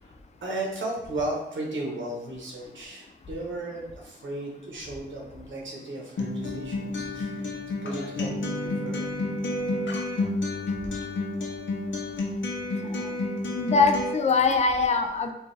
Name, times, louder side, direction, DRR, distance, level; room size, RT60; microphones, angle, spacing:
voice 1, 0.4-9.2, right 2 dB, 90° right, -2 dB, 0.9 m, -35 dB
Acoustic guitar, 6.2-14.2, left 2 dB, 85° left, 0.7 m, -30 dB
voice 2, 13.5-15.3, left 4 dB, 35° left, 5 dB, 0.4 m, -23 dB
4.5 x 2.4 x 3.2 m, 0.84 s
wide cardioid pair, 150°, 19 cm